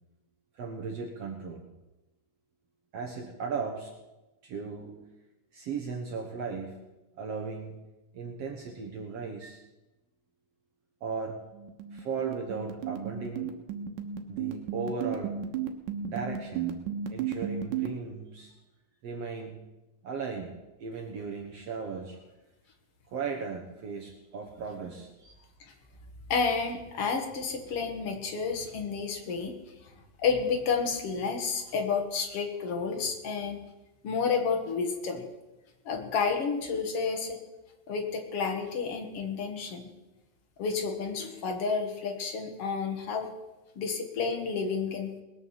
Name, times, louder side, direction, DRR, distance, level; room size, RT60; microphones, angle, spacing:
voice 1, 0.5-1.7 2.9-3.9 4.4-5.0 5.5-6.8 7.1-7.7 8.1-9.6 11.0-11.4 11.9-13.5 14.3-15.4 16.1-16.9 17.1-18.5 19.0-19.6 20.0-20.5 20.8-22.2 23.1-25.3, right 5 dB, 60° right, 1 dB, 2.1 m, -36 dB
sound 1, 11.5-17.9, right 9 dB, 85° right, 2.8 m, -33 dB
voice 2, 26.3-29.5 30.2-33.6 34.0-35.3 35.9-37.4 37.9-39.9 40.6-43.3 43.8-45.1, left 5 dB, 50° left, 4 dB, 2.5 m, -30 dB
20.0 x 7.1 x 7.4 m, 1.0 s
omnidirectional pair, 3.7 m